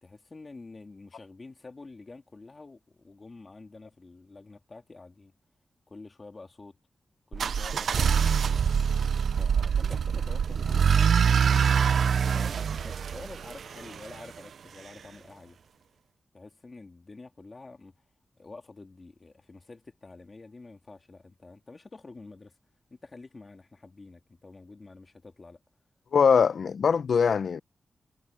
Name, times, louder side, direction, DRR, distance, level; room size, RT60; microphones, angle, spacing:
voice 1, 0.0-5.3 5.9-6.8 7.3-8.7 9.3-15.6 16.3-18.0 18.4-22.6 22.9-25.6, left 3 dB, 30° left, 3.0 m, -48 dB
sound 1, 7.3-14.2, right 7 dB, 80° right, 0.4 m, -25 dB
voice 2, 26.1-27.6, left 6 dB, 70° left, 0.6 m, -22 dB
wide cardioid pair, 165°, 0 cm